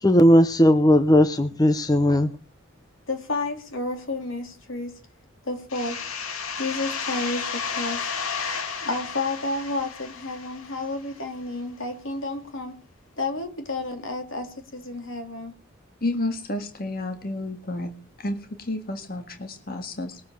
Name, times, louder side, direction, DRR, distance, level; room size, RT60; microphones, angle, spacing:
voice 1, 0.0-2.3, equal, 20° left, 0.6 m, -17 dB
voice 2, 3.1-4.9 5.4-6.0 6.6-8.1 8.8-12.7 13.2-15.5, left 2 dB, 65° left, 3.3 m, -31 dB
sound 1, 5.7-11.2, left 6 dB, 85° left, 2.3 m, -32 dB
voice 3, 16.0-17.9 18.2-20.2, left 2 dB, 45° left, 1.8 m, -31 dB
20.5 x 7.4 x 7.2 m
head